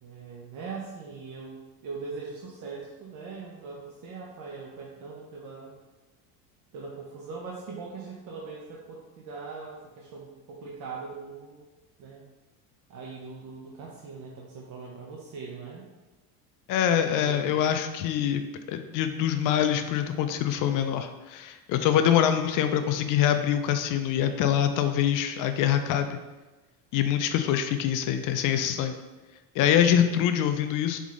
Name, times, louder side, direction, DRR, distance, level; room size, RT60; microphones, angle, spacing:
voice 1, 0.0-5.7 6.7-11.7 12.0-12.2 12.9-15.8 17.1-17.6, right 4 dB, 45° right, -3 dB, 0.8 m, -41 dB
voice 2, 16.7-18.4 18.7-26.2 26.9-29.0 29.6-31.0, left 9 dB, 50° left, 8 dB, 0.4 m, -24 dB
4.1 x 3.5 x 3.7 m, 1.2 s
supercardioid pair, 115°, 43 cm